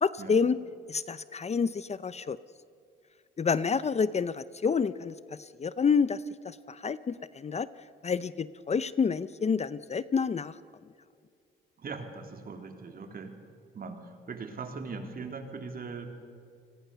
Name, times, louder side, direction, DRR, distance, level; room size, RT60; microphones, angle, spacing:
voice 1, 0.0-0.6 0.9-2.4 3.4-5.2 5.6-7.7 8.0-10.6, left 5 dB, 35° left, 15 dB, 0.7 m, -28 dB
voice 2, 11.8-13.4 13.7-16.1, right 4 dB, 45° right, 5 dB, 3.4 m, -40 dB
30.0 x 20.0 x 6.9 m, 2.3 s
cardioid pair, 90°, 20 cm